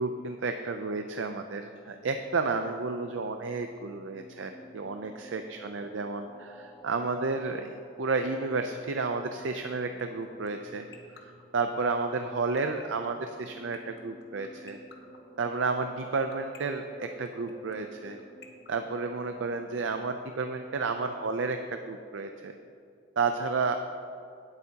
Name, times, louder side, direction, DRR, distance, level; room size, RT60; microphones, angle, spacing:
voice 1, 0.0-7.7 8.0-10.8 11.2-14.8 15.4-18.2 18.7-22.5 23.2-23.8, right 4 dB, 70° right, 6 dB, 0.5 m, -31 dB
sound 1, 3.1-20.4, right 1 dB, 10° left, 2.3 m, -52 dB
sound 2, 10.0-19.6, left 7 dB, 60° left, 1.2 m, -50 dB
18.0 x 8.1 x 2.9 m, 2.4 s
head